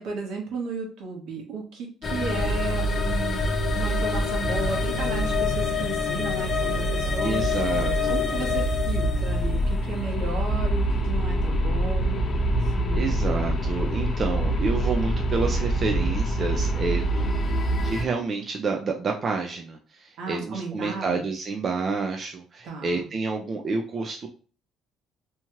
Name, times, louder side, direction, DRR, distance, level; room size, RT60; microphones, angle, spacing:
voice 1, 0.0-3.4 3.7-7.5 8.1-13.2 20.2-21.2 22.6-23.1, right 3 dB, 75° right, 0 dB, 1.1 m, -34 dB
sound 1, 2.0-18.0, equal, 35° left, 0.4 m, -25 dB
voice 2, 7.2-8.2 9.9-10.4 12.9-24.3, right 4 dB, 35° right, 2 dB, 0.4 m, -29 dB
2.8 x 2.3 x 3.0 m, 0.39 s
cardioid pair, 135°, 0 cm